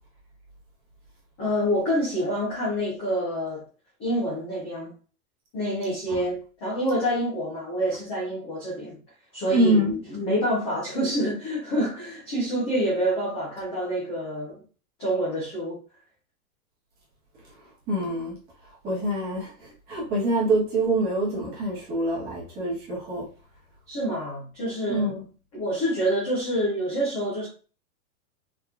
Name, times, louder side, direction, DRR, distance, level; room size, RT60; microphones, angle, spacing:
voice 1, 1.4-3.6 4.0-4.9 5.5-9.0 9.3-14.6 15.0-15.8 23.9-25.1 25.5-27.5, equal, 10° left, 0.4 m, -27 dB
voice 2, 9.5-9.9 17.9-18.3 18.8-19.5 19.9-23.3 24.9-25.2, right 1 dB, 20° right, 1.1 m, -25 dB
3.5 x 2.8 x 2.4 m
supercardioid pair, 170°, 44 cm